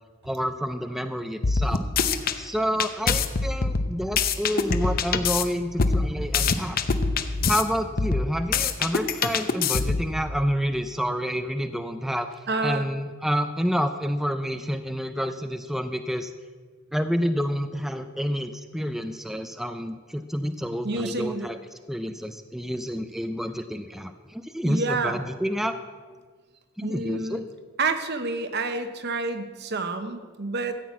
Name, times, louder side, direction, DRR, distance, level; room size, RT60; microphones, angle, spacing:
voice 1, 0.2-1.8 2.3-6.8 7.4-12.3 12.6-16.3 16.9-21.6 21.9-25.7 26.8-27.4, equal, ahead, 8 dB, 0.4 m, -29 dB
sound 1, 1.4-2.4 2.8-5.4 5.8-7.6 8.0-10.1, left 4 dB, 50° left, 0.7 m, -24 dB
voice 2, 12.5-12.9 20.8-21.5 24.6-25.2 26.8-27.4 27.8-30.8, right 3 dB, 55° right, 8 dB, 1.0 m, -28 dB
14.0 x 6.0 x 8.3 m, 1.6 s
head